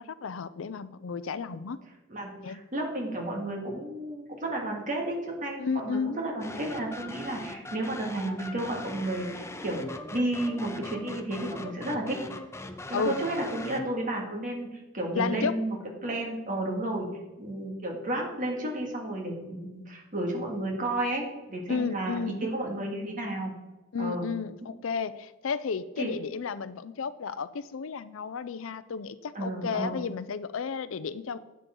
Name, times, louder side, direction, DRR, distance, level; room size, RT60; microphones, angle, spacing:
voice 1, 0.0-1.8 2.4-2.6 5.6-6.2 12.9-13.2 15.1-15.5 21.7-22.4 23.9-31.4, left 5 dB, 70° left, 15 dB, 0.5 m, -32 dB
voice 2, 2.1-9.8 10.1-12.2 12.9-15.8 16.0-17.1 17.4-23.5 24.0-24.3 26.0-26.1 29.3-30.0, right 1 dB, 40° right, 1 dB, 2.1 m, -32 dB
sound 1, 6.4-14.0, left 2 dB, 15° left, 0.6 m, -40 dB
11.0 x 8.5 x 3.8 m, 1.1 s
head